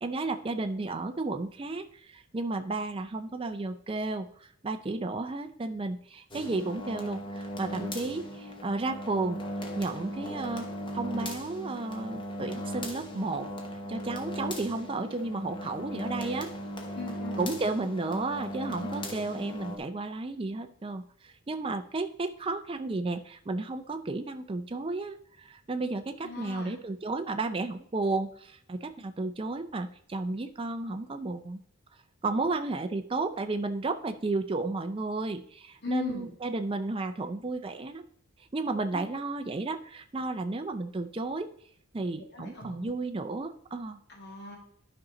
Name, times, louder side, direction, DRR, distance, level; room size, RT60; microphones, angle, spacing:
voice 1, 0.0-9.4 9.8-10.7 10.9-13.5 13.9-16.5 17.4-31.6 32.2-38.1 38.5-41.5 41.9-44.0, right 3 dB, 25° right, 7 dB, 0.4 m, -33 dB
sound 1, 6.3-19.8, equal, 20° left, 1.0 m, -38 dB
voice 2, 17.0-17.6 26.2-26.7 32.4-32.5 35.8-36.3 42.3-42.9 44.1-44.6, left 4 dB, 50° left, 0 dB, 1.9 m, -38 dB
11.5 x 5.4 x 3.8 m, 0.63 s
head